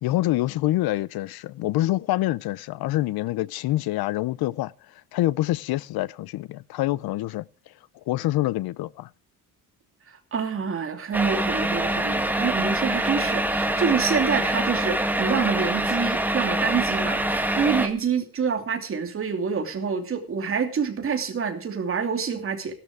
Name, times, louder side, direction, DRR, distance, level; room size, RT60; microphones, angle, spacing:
voice 1, 0.0-4.7 5.1-7.5 8.1-9.1, left 16 dB, 85° left, 0.7 m, -26 dB
voice 2, 10.3-22.7, right 6 dB, 35° right, 2.7 m, -27 dB
sound 1, 11.1-17.9, right 1 dB, 5° right, 1.5 m, -25 dB
16.0 x 12.5 x 4.8 m
cardioid pair, 160°, 36 cm